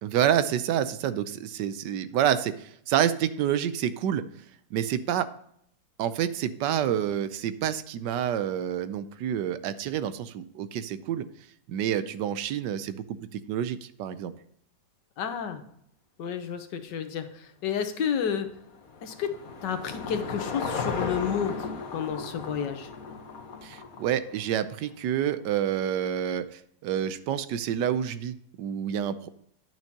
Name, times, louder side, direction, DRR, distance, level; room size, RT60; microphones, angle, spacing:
voice 1, 0.0-4.2 4.7-5.3 6.0-11.2 11.7-13.0 13.3-14.3 23.6-29.3, right 10 dB, 80° right, 13 dB, 1.2 m, -28 dB
voice 2, 15.2-15.6 16.2-18.5 19.0-19.4 19.6-21.6 21.9-22.9, left 8 dB, 85° left, 8 dB, 1.6 m, -30 dB
Car passing by / Engine, 18.1-24.6, left 4 dB, 55° left, 1.5 m, -36 dB
10.5 x 6.1 x 2.8 m, 0.70 s
omnidirectional pair, 1.9 m